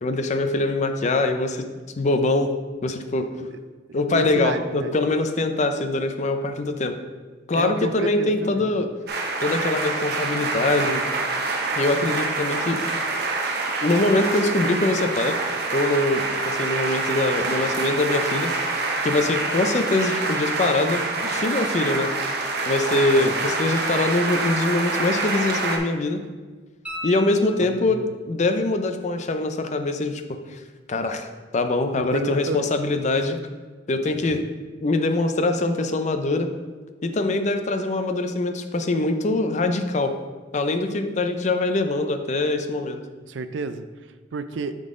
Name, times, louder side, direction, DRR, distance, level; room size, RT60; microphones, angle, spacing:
voice 1, 0.0-1.7 2.0-2.5 2.8-3.3 3.9-7.0 7.5-8.9 9.4-11.1 11.7-12.8 13.8-15.4 15.7-18.5 19.0-22.3 22.7-26.2 27.0-30.6 30.9-31.3 31.5-33.4 33.9-34.4 34.8-36.5 37.0-40.1 40.5-43.0, left 2 dB, 40° left, 7 dB, 0.5 m, -23 dB
voice 2, 3.9-5.0 7.5-8.8 23.2-23.3 27.6-28.1 32.0-32.6 34.3-34.4 43.3-43.8 44.3-44.8, right 4 dB, 80° right, 11 dB, 0.4 m, -31 dB
sound 1, 9.1-25.8, right 3 dB, 60° right, 0.8 m, -26 dB
sound 2, 26.8-28.2 31.0-31.1, left 1 dB, 5° right, 1.1 m, -37 dB
8.8 x 3.9 x 3.7 m, 1.3 s
head